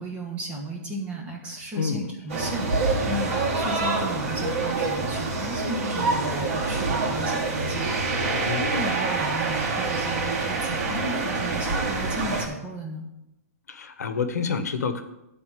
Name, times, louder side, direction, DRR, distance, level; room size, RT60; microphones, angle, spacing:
voice 1, 0.0-13.0, equal, 15° right, 0 dB, 1.5 m, -35 dB
voice 2, 1.7-2.2 8.2-8.7 13.7-15.0, left 5 dB, 85° left, 9 dB, 1.1 m, -29 dB
sound 1, 2.3-12.5, right 3 dB, 55° right, 2.6 m, -26 dB
10.5 x 4.2 x 7.4 m, 0.90 s
hypercardioid pair, 165°, 9 cm